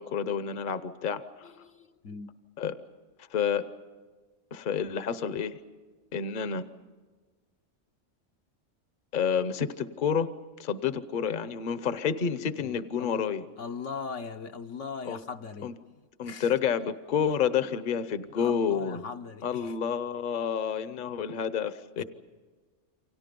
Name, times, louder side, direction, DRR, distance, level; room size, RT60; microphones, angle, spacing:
voice 1, 0.0-1.5 2.6-2.7 3.3-3.6 4.5-5.6 6.1-6.6 9.1-10.3 10.6-13.4 15.1-15.2 15.6-15.7 16.2-19.0 19.4-22.0, left 7 dB, 45° left, 0.9 m, -29 dB
voice 2, 1.4-2.3 12.6-16.5 18.3-19.7 22.0-22.1, left 5 dB, 75° left, 1.3 m, -40 dB
29.0 x 25.0 x 5.3 m
omnidirectional pair, 1.3 m